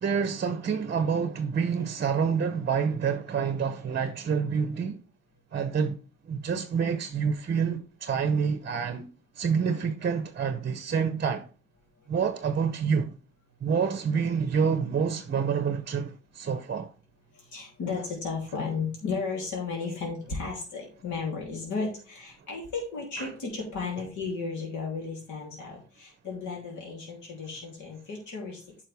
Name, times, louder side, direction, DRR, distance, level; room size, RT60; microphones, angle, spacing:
voice 1, 0.0-5.0 5.5-6.0 6.3-9.1 9.4-11.5 12.1-13.1 13.6-16.9 23.2-23.3, right 6 dB, 35° right, 0.7 m, -27 dB
voice 2, 17.3-28.6, left 4 dB, 75° left, 3.2 m, -34 dB
9.0 x 5.6 x 3.4 m
cardioid pair, 90°, 30 cm